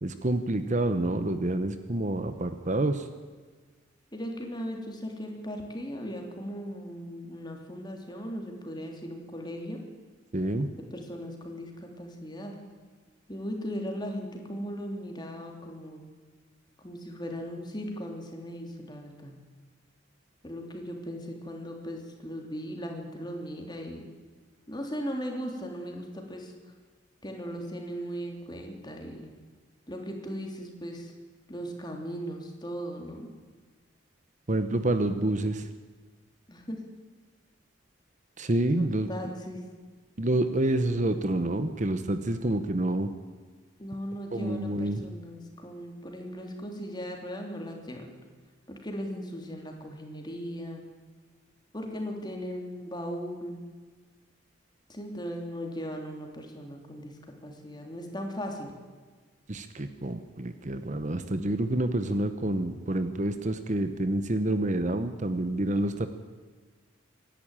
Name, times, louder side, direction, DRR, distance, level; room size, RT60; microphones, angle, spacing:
voice 1, 0.0-3.1 10.3-10.7 34.5-35.7 38.4-39.1 40.2-43.1 44.3-45.0 59.5-66.1, right 1 dB, 40° right, 9 dB, 1.0 m, -28 dB
voice 2, 4.1-9.8 10.9-12.5 13.3-16.0 16.8-19.3 20.4-24.1 24.7-26.5 27.2-29.3 29.9-31.1 31.5-33.3 36.5-36.8 38.7-39.6 43.8-48.1 48.7-50.8 51.7-53.6 54.9-58.7, equal, 20° left, 2 dB, 3.2 m, -38 dB
25.5 x 11.5 x 9.0 m, 1.4 s
head